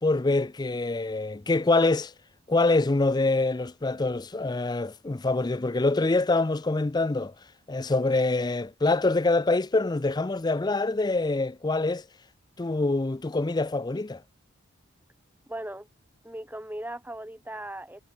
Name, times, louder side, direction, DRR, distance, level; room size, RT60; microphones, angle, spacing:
voice 1, 0.0-2.1 2.5-7.3 7.7-12.0 12.6-14.2, left 2 dB, 20° left, 0.4 m, -25 dB
voice 2, 15.5-15.9 16.2-18.0, right 1 dB, 10° right, 4.6 m, -38 dB
head